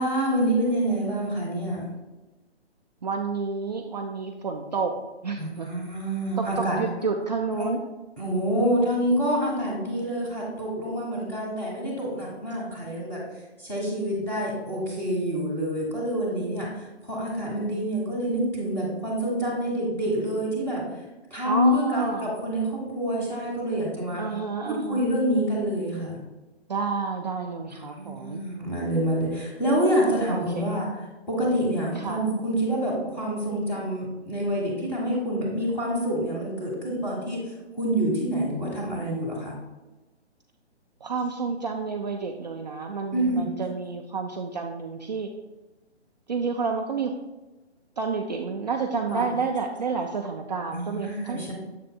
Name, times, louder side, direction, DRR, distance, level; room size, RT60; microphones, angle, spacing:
voice 1, 0.0-1.8 5.4-6.8 7.6-7.7 8.2-13.2 13.6-20.8 21.3-24.2 24.6-26.2 27.7-30.9 31.3-39.5 43.1-43.5 49.1-49.3 50.7-51.5, equal, 5° left, -5 dB, 1.4 m, -27 dB
voice 2, 3.0-4.9 5.2-5.7 6.4-7.8 21.4-22.3 24.2-25.0 26.7-28.4 30.3-30.7 31.9-32.2 41.0-45.3 46.3-47.1 48.0-51.5, right 5 dB, 40° right, 2 dB, 0.4 m, -30 dB
7.4 x 7.3 x 2.3 m, 1.1 s
figure-of-eight pair, 140°, 34 cm